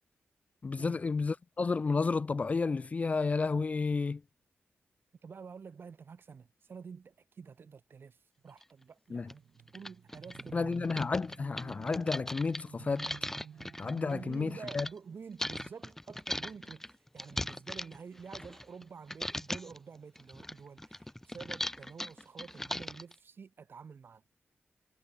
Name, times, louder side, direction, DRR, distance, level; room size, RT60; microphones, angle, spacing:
voice 1, 0.6-4.2 9.1-9.3 10.5-13.1 13.8-14.9, left 4 dB, 35° left, 0.4 m, -31 dB
voice 2, 5.2-8.2 8.4-9.4 9.7-10.7 14.1-24.2, right 6 dB, 55° right, 5.1 m, -49 dB
sound 1, 8.6-8.7 9.3-9.4 9.7-14.9 15.4-18.8 19.1-19.8 20.1-23.1, left 1 dB, 10° left, 2.2 m, -39 dB
sound 2, 9.2-14.5, right 8 dB, 85° right, 4.2 m, -51 dB
wide cardioid pair, 115°, 4 cm